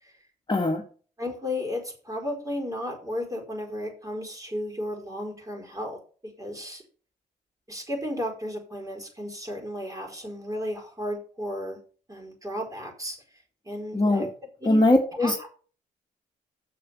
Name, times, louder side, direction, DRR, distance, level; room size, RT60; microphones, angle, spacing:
voice 1, 0.5-0.8 13.9-14.3 14.7-15.5, left 1 dB, 25° left, 2 dB, 2.1 m, -21 dB
voice 2, 1.2-6.8 7.7-11.8 12.1-13.2 13.6-14.3 14.6-14.8 15.2-15.3, left 1 dB, 20° right, 1 dB, 4.5 m, -34 dB
7.0 x 6.5 x 7.0 m, 0.41 s
supercardioid pair, 50°, 19 cm